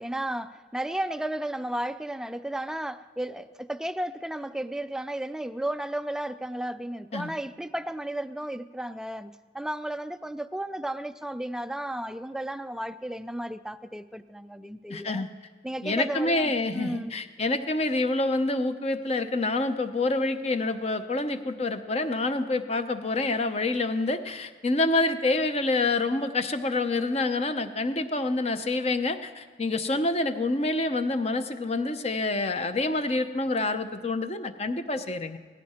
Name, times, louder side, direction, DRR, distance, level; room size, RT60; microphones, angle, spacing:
voice 1, 0.0-15.2 15.6-17.1, right 1 dB, 5° right, 12 dB, 0.3 m, -33 dB
voice 2, 14.9-15.3 15.8-35.4, left 2 dB, 35° left, 9 dB, 0.7 m, -27 dB
17.5 x 15.0 x 4.4 m, 1.5 s
head